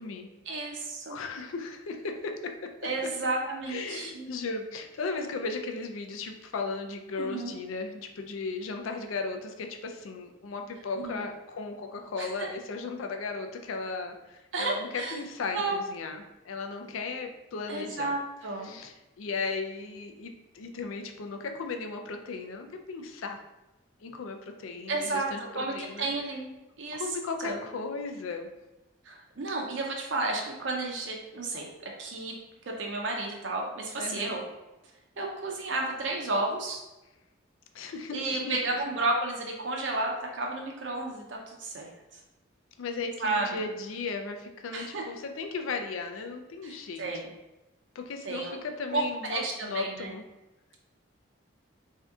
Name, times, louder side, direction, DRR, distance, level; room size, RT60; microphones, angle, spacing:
voice 1, 0.5-1.2 2.8-4.2 7.2-7.5 11.0-11.2 12.2-12.5 14.5-15.2 15.5-15.8 17.7-18.8 24.9-26.5 26.8-27.0 27.4-27.6 29.0-32.3 32.7-34.4 35.2-36.8 38.1-41.9 43.2-43.6 44.7-45.0 46.6-47.3 48.2-48.6 48.9-50.1, right 2 dB, 65° right, 0 dB, 0.5 m, -32 dB
voice 2, 1.1-2.7 3.7-18.1 18.6-23.4 24.0-26.1 26.9-28.5 33.9-34.4 37.7-38.6 42.8-47.0 47.9-50.2, left 4 dB, 80° left, 5 dB, 0.4 m, -36 dB
3.5 x 2.7 x 3.4 m, 1.0 s
head